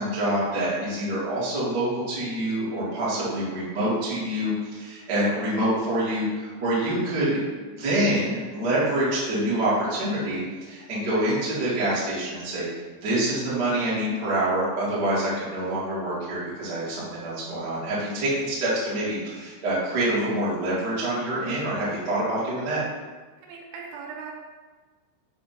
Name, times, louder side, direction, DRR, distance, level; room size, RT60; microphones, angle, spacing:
voice 1, 0.0-12.7 13.0-22.8, right 1 dB, 60° right, -9 dB, 1.0 m, -26 dB
voice 2, 23.4-24.3, right 5 dB, 80° right, -1 dB, 3.3 m, -39 dB
7.3 x 2.7 x 5.7 m, 1.4 s
omnidirectional pair, 5.6 m